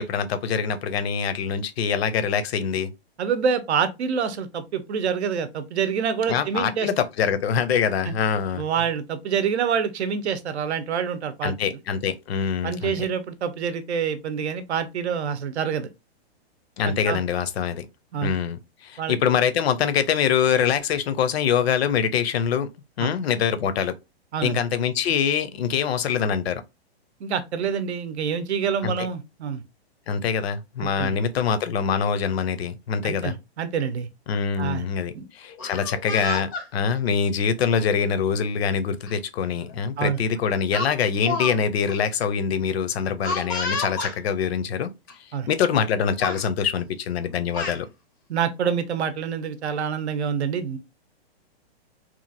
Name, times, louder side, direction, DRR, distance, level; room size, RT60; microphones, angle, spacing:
voice 1, 0.0-2.9 6.3-8.6 11.4-13.1 16.8-17.9 18.2-22.7 23.0-24.0 24.4-26.6 28.8-29.1 30.1-33.3 34.3-44.9 45.5-47.9, left 7 dB, 70° left, 0.6 m, -24 dB
voice 2, 3.2-6.9 8.0-8.1 8.6-11.5 12.6-15.9 16.8-17.2 18.1-18.3 19.0-19.2 23.0-23.1 24.3-24.6 27.2-29.6 30.8-31.2 33.0-34.1 34.6-34.9 35.1-35.3 40.0-40.2 45.3-45.5 48.3-50.8, right 7 dB, 90° right, 0.7 m, -26 dB
Speech, 35.5-36.7 37.6-37.8 39.1-39.2 39.5-39.8 40.7-41.6 41.8-41.9 43.2-44.2 45.1-45.2 45.5-45.9 46.2-46.4 47.2-47.8, left 2 dB, 20° left, 0.4 m, -30 dB
2.9 x 2.4 x 2.6 m
hypercardioid pair, 170°, 32 cm